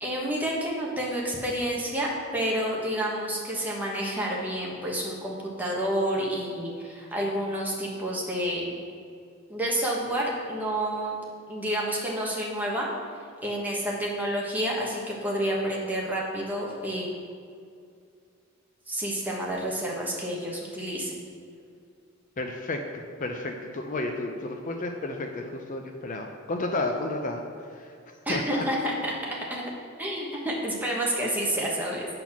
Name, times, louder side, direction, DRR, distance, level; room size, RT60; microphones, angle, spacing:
voice 1, 0.0-8.8 9.5-11.2 11.5-12.9 13.4-17.1 18.9-21.1 28.2-29.6 30.0-32.1, right 1 dB, 10° right, -3 dB, 1.3 m, -29 dB
voice 2, 22.4-27.4 27.7-28.0 28.3-28.6, left 2 dB, 40° left, 3 dB, 0.5 m, -32 dB
8.6 x 4.1 x 5.9 m, 2.4 s
head